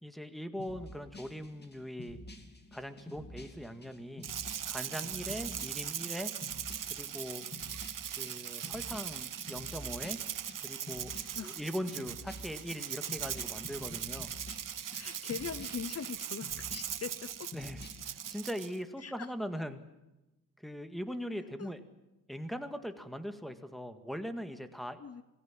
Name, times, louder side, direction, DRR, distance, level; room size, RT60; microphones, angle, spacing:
voice 1, 0.0-2.2 2.7-4.3 4.7-6.3 6.9-7.4 8.2-10.2 10.6-11.1 11.4-14.3 17.5-19.8 20.6-21.8 22.3-25.0, equal, ahead, 8 dB, 1.9 m, -40 dB
sound 1, 0.6-18.3, left 1 dB, 30° left, 2.6 m, -49 dB
Rattle (instrument), 4.2-18.8, right 9 dB, 65° right, 0.9 m, -40 dB
voice 2, 14.9-17.5 19.0-19.3 21.6-21.7 25.0-25.2, left 6 dB, 45° left, 14 dB, 0.9 m, -41 dB
27.5 x 19.5 x 7.5 m, 0.98 s
wide cardioid pair, 135°, 34 cm